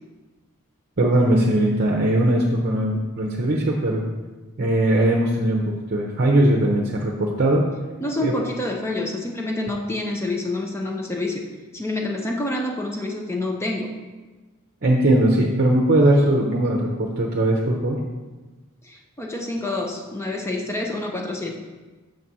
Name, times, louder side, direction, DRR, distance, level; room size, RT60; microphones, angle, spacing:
voice 1, 1.0-4.0 4.6-7.7 8.2-8.3 14.8-18.0, right 1 dB, 45° right, -1 dB, 0.7 m, -20 dB
voice 2, 8.0-11.4 11.7-13.9 18.8-21.5, left 2 dB, 10° left, 1 dB, 0.5 m, -27 dB
6.5 x 4.1 x 6.1 m, 1.2 s
head